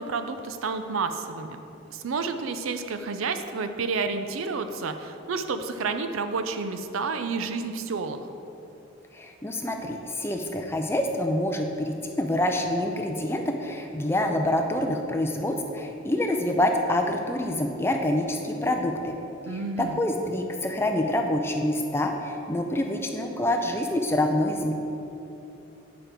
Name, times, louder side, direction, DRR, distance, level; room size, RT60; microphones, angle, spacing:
voice 1, 0.0-1.6 1.9-8.3 19.4-20.0, right 4 dB, 75° right, 8 dB, 0.5 m, -30 dB
voice 2, 9.1-19.2 19.8-24.7, left 1 dB, 10° left, 3 dB, 0.4 m, -26 dB
8.9 x 5.2 x 4.4 m, 2.9 s
head